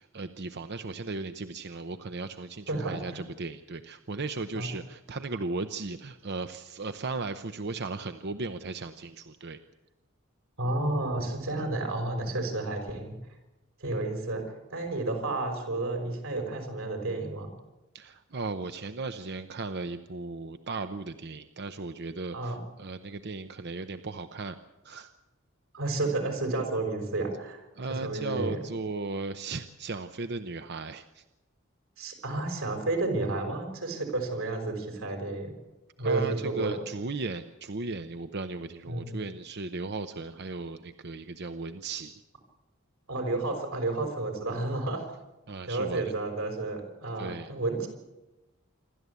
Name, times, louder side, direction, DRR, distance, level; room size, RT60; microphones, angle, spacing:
voice 1, 0.0-9.6 17.9-24.6 24.8-25.1 27.8-31.2 36.0-42.2 45.5-46.1 47.2-47.5, right 3 dB, 55° right, 9 dB, 0.8 m, -36 dB
voice 2, 2.7-3.0 4.5-4.7 10.6-13.2 13.8-17.5 22.3-22.6 25.7-27.6 28.0-28.6 32.0-35.5 36.0-36.8 38.9-39.2 43.1-45.0 45.7-47.9, right 2 dB, 75° right, 4 dB, 5.6 m, -31 dB
27.0 x 13.0 x 8.3 m, 1.0 s
head